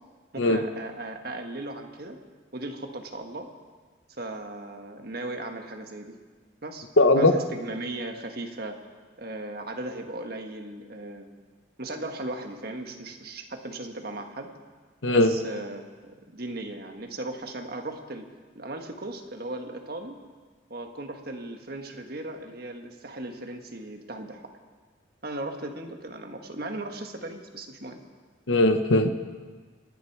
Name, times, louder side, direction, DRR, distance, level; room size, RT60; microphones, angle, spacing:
voice 1, 0.3-2.2 2.5-3.5 4.2-6.1 6.6-6.9 7.2-8.8 9.2-11.3 11.8-14.5 15.1-15.8 16.3-18.3 18.5-20.2 20.7-24.5 25.2-28.0, right 2 dB, 50° right, 4 dB, 1.5 m, -37 dB
voice 2, 7.0-7.3 15.0-15.3 28.5-29.1, left 2 dB, 70° left, 9 dB, 1.0 m, -19 dB
26.0 x 10.0 x 4.8 m, 1.5 s
head